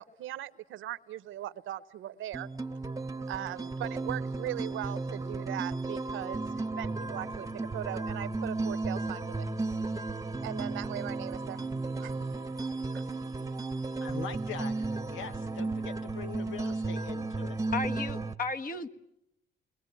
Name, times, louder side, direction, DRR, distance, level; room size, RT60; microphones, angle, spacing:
voice 1, 0.0-2.5 3.3-6.4 6.8-9.5 10.4-12.5 12.9-13.0, right 13 dB, 85° right, 1.0 m, -39 dB
sound 1, 2.3-18.3, right 3 dB, 15° right, 1.0 m, -34 dB
voice 2, 14.0-17.6, left 7 dB, 85° left, 1.1 m, -43 dB
voice 3, 17.7-18.9, left 4 dB, 45° left, 1.7 m, -34 dB
29.0 x 22.5 x 9.3 m
cardioid pair, 90°, 20 cm